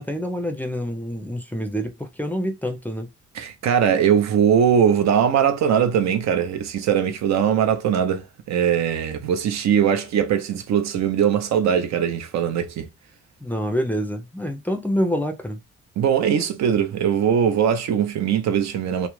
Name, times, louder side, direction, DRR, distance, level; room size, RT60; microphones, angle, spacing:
voice 1, 0.0-3.1 13.4-15.6, equal, 5° left, 0.4 m, -26 dB
voice 2, 3.3-12.9 16.0-19.1, right 8 dB, 65° right, 0.5 m, -21 dB
2.3 x 2.0 x 3.0 m
cardioid pair, 90°, 30 cm